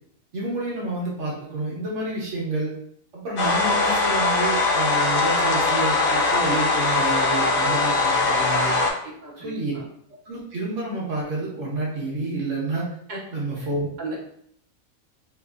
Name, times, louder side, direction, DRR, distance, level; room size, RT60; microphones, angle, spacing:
voice 1, 0.3-2.7 3.1-8.7 9.4-9.7 10.2-12.9 13.3-13.9, right 2 dB, 60° right, -5 dB, 1.3 m, -29 dB
sound 1, 3.4-8.9, left 3 dB, 55° left, 0.6 m, -21 dB
voice 2, 9.0-9.8 13.1-13.2 13.6-13.7 14.0-14.2, right 2 dB, 40° right, -5 dB, 1.0 m, -36 dB
4.0 x 2.5 x 2.4 m, 0.67 s
omnidirectional pair, 1.5 m